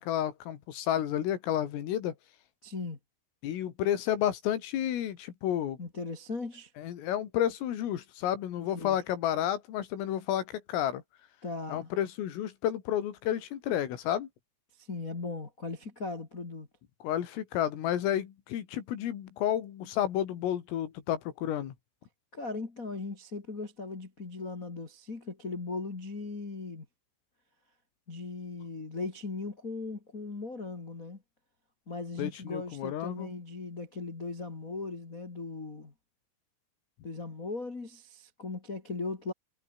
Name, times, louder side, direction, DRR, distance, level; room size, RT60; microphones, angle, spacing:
voice 1, 0.0-2.2 3.4-5.8 6.8-11.0 11.7-14.3 17.0-21.8 32.2-33.3, left 11 dB, 90° left, 5.2 m, -31 dB
voice 2, 2.6-3.0 5.8-6.7 8.7-9.0 11.4-11.9 14.8-16.7 22.3-26.8 28.1-31.2 31.9-35.9 37.0-39.3, left 3 dB, 30° left, 1.6 m, -38 dB
omnidirectional pair, 5.7 m